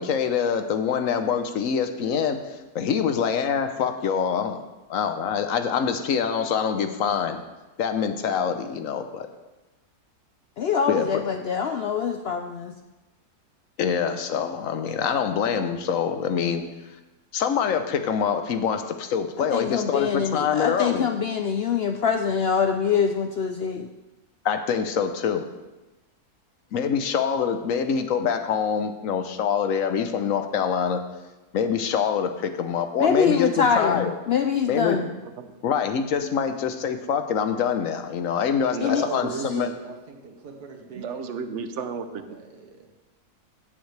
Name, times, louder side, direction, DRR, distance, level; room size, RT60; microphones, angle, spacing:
voice 1, 0.0-2.4 2.7-4.6 4.9-7.4 7.8-9.3 10.9-11.2 13.8-16.6 17.3-21.1 24.4-25.5 26.7-31.0 31.5-34.1 34.7-35.0 35.6-39.7, left 7 dB, 65° left, 8 dB, 1.1 m, -25 dB
voice 2, 1.9-2.3 8.5-8.9 9.2-9.4 35.5-35.7 39.7-41.2 42.1-42.7, right 3 dB, 85° right, 2 dB, 1.8 m, -45 dB
voice 3, 10.6-12.7 19.5-23.9 33.0-35.1 38.8-39.0 39.3-39.5, left 6 dB, 85° left, 5 dB, 0.5 m, -24 dB
voice 4, 34.9-35.5 38.7-39.8 40.9-42.1, right 6 dB, 60° right, 9 dB, 0.9 m, -33 dB
16.0 x 7.4 x 3.3 m, 1.1 s
omnidirectional pair, 1.6 m